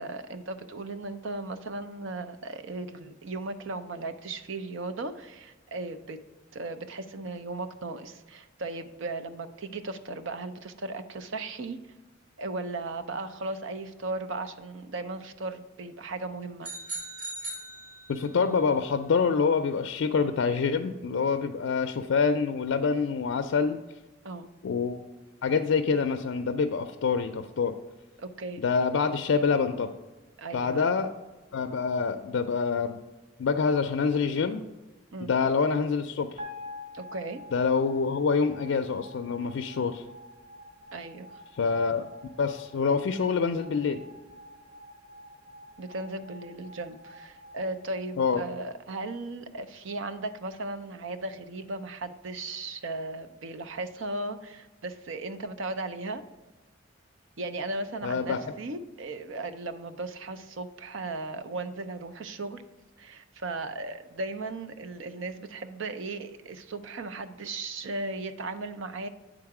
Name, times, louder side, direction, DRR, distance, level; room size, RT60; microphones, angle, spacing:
voice 1, 0.0-6.2 6.5-11.8 12.4-16.7 24.2-24.5 28.2-28.6 30.4-30.8 35.1-35.3 36.9-37.4 40.9-41.3 45.8-56.2 57.4-62.6 63.0-69.1, right 2 dB, 80° right, 9 dB, 0.6 m, -36 dB
sound 1, 16.6-18.5, right 2 dB, 45° right, 2.6 m, -39 dB
voice 2, 18.1-23.8 24.6-25.0 25.4-27.7 28.6-29.9 30.5-31.1 31.5-33.0 33.4-34.6 35.2-36.4 37.5-40.0 41.6-42.1 42.4-44.0 48.2-48.4 58.0-58.4, left 5 dB, 75° left, 7 dB, 0.4 m, -26 dB
sound 2, 36.4-48.7, left 2 dB, 30° right, 1.5 m, -48 dB
8.7 x 3.8 x 4.7 m, 1.2 s
head